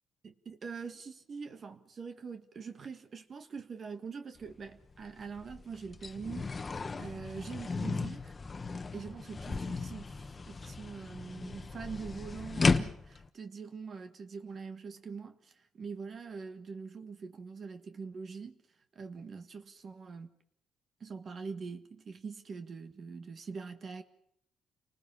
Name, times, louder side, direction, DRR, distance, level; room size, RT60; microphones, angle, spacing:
voice 1, 0.2-8.3 8.9-18.6 18.9-20.3 21.0-24.0, right 5 dB, 45° right, 1.6 m, -44 dB
sound 1, 4.4-4.5 4.9-13.3, left 4 dB, 30° left, 1.2 m, -35 dB
29.5 x 19.5 x 5.6 m
cardioid pair, 90°, 0 cm